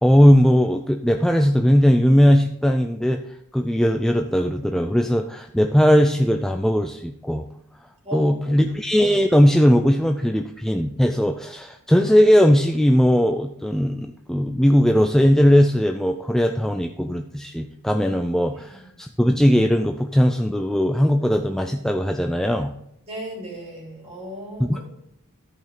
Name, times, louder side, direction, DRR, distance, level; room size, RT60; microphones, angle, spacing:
voice 1, 0.0-3.2 3.5-7.5 8.1-22.7 24.6-24.8, equal, ahead, 4 dB, 0.4 m, -18 dB
voice 2, 8.0-8.6 18.7-18.8 23.0-24.8, right 1 dB, 30° right, -3 dB, 3.5 m, -36 dB
13.5 x 5.4 x 3.8 m, 0.76 s
head